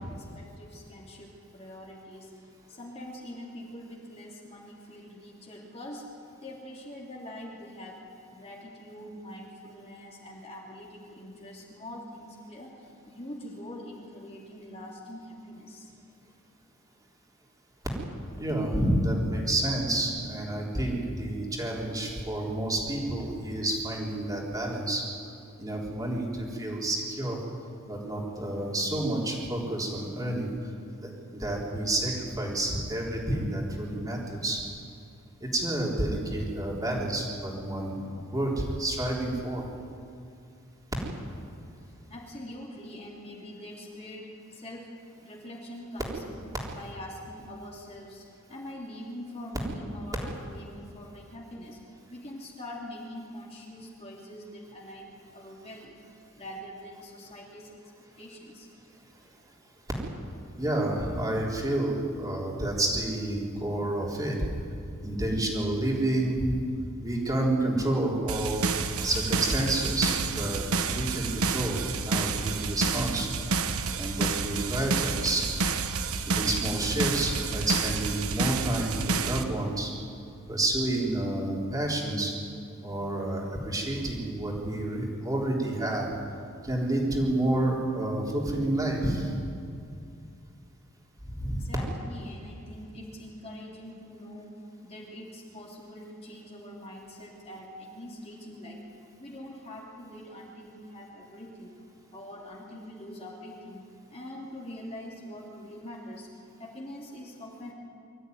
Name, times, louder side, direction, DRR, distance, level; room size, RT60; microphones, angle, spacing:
voice 1, 0.0-6.1 6.4-8.0 8.3-15.9 41.9-44.9 45.2-56.0 56.4-57.8 58.2-58.7 91.6-98.8 99.2-101.7 102.1-106.3 106.6-107.7, left 1 dB, 30° left, -2 dB, 3.0 m, -44 dB
voice 2, 18.4-25.0 25.6-27.4 27.9-30.5 31.0-34.6 35.4-39.6 60.6-64.5 65.0-66.5 67.0-68.6 69.0-73.3 74.0-75.5 76.3-79.9 80.5-82.3 82.8-86.1 86.6-89.3 91.4-91.6, right 1 dB, 15° right, -2 dB, 3.7 m, -29 dB
sound 1, 68.3-79.4, right 4 dB, 80° right, 1.2 m, -29 dB
24.0 x 14.0 x 9.4 m, 2.4 s
head